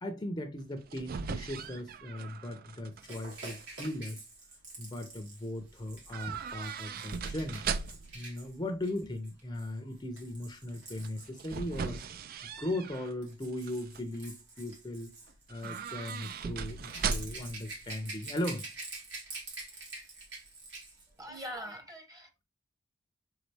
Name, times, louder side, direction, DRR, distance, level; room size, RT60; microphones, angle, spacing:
voice 1, 0.0-4.2 4.8-7.6 8.1-12.0 12.4-15.1 15.5-18.6, left 1 dB, 20° left, 0.6 m, -38 dB
sound 1, 0.6-3.0 3.3-3.9 6.1-8.2 11.0-13.1 13.5-14.0 15.5-17.6 17.8-17.9, right 6 dB, 50° right, 0.4 m, -38 dB
Rattle / Rattle (instrument), 3.0-12.0 12.9-21.1 21.3-21.5, right 3 dB, 70° right, 2.3 m, -47 dB
voice 2, 21.2-22.4, equal, 20° right, 1.0 m, -43 dB
4.0 x 3.9 x 3.2 m
head